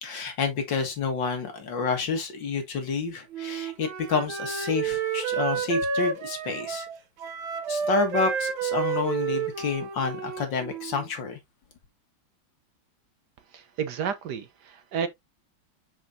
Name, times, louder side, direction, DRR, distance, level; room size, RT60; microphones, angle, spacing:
voice 1, 0.0-6.9 7.7-11.4, left 5 dB, 65° left, 2.3 m, -29 dB
Wind instrument woodwind instrument, 3.3-11.1, right 6 dB, 85° right, 2.0 m, -30 dB
voice 2, 13.5-15.1, right 7 dB, 65° right, 1.3 m, -31 dB
6.6 x 6.3 x 2.6 m
omnidirectional pair, 2.1 m